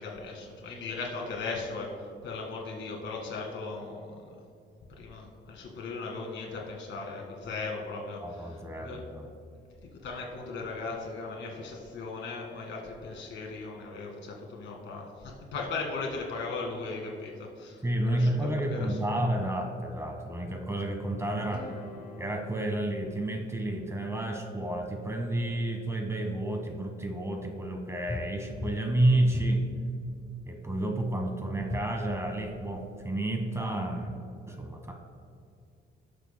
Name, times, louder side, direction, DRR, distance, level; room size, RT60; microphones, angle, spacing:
voice 1, 0.0-1.9 2.2-4.4 5.0-9.0 10.0-19.0, left 3 dB, 70° left, 0 dB, 2.0 m, -38 dB
voice 2, 8.2-9.3 17.8-21.7 22.2-29.7 30.5-34.2 34.5-34.9, right 1 dB, 15° right, 3 dB, 1.4 m, -30 dB
sound 1, 21.4-25.6, left 3 dB, 45° left, 1.4 m, -49 dB
sound 2, 28.0-28.3 28.5-28.8 29.3-29.5 31.6-31.9, left 2 dB, 20° left, 0.8 m, -35 dB
18.5 x 7.0 x 2.2 m, 2.4 s
cardioid pair, 90°, 20 cm